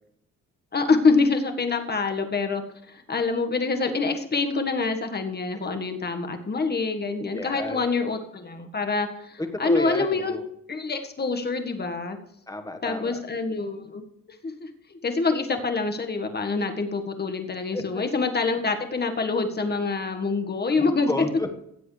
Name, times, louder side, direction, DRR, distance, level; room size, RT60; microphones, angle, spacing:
voice 1, 0.7-2.6 2.9-10.4 10.7-12.2 12.8-14.0 14.4-21.1, left 4 dB, 35° left, 6 dB, 1.7 m, -26 dB
voice 2, 7.4-7.8 9.6-10.4 12.5-13.2 17.7-18.0 20.7-21.5, left 2 dB, 10° left, 6 dB, 1.5 m, -31 dB
16.0 x 7.8 x 3.3 m, 0.75 s
cardioid pair, 90°, 30 cm